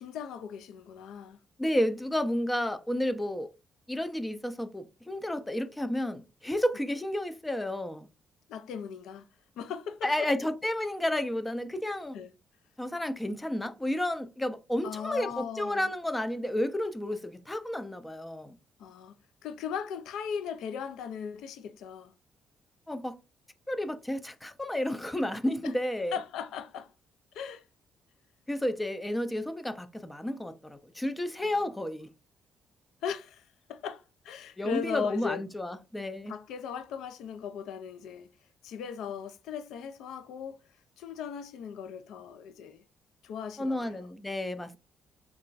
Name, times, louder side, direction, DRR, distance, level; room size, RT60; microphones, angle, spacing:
voice 1, 0.0-1.4 8.5-9.3 9.6-10.3 12.1-12.3 14.8-15.9 18.8-19.2 19.4-22.1 25.6-25.7 26.1-26.9 27.3-27.6 31.4-31.5 33.0-35.4 36.3-38.3 38.6-40.6 41.0-42.8 43.2-44.1, left 7 dB, 85° left, 0.3 m, -38 dB
voice 2, 1.6-3.5 3.9-8.1 10.0-12.2 12.8-18.5 22.9-23.2 23.7-26.2 28.5-32.1 34.6-36.3 43.6-44.8, left 1 dB, 10° left, 0.4 m, -31 dB
2.9 x 2.3 x 2.4 m
cardioid pair, 90°, 0 cm